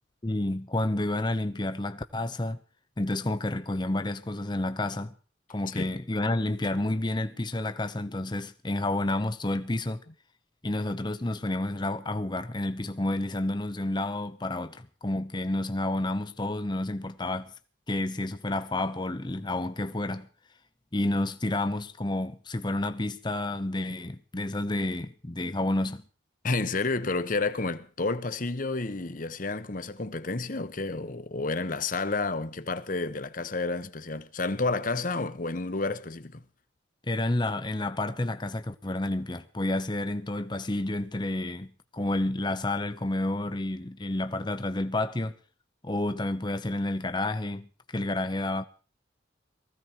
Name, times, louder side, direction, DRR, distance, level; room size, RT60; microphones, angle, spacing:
voice 1, 0.2-2.6 3.0-5.1 5.5-10.0 10.6-17.5 17.9-20.3 20.9-26.0 37.0-45.3 45.8-48.7, left 1 dB, 25° left, 0.8 m, -30 dB
voice 2, 26.4-36.4, left 3 dB, 45° left, 1.0 m, -30 dB
19.5 x 15.0 x 4.6 m
head